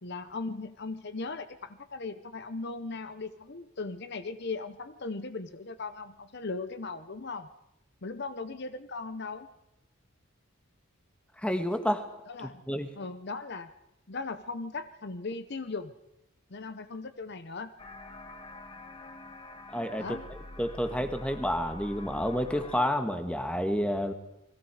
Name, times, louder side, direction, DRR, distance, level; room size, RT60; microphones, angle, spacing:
voice 1, 0.0-7.5 8.0-9.5 12.3-12.6 13.0-13.7 14.1-15.9 16.5-17.7 20.0-20.3, left 3 dB, 50° left, 11 dB, 0.8 m, -38 dB
voice 2, 11.4-12.0 12.7-12.9 19.7-20.2 20.6-24.1, equal, 5° left, 7 dB, 1.5 m, -29 dB
sound 1, 17.8-22.8, left 1 dB, 25° left, 1.5 m, -46 dB
29.0 x 21.0 x 4.9 m, 0.88 s
head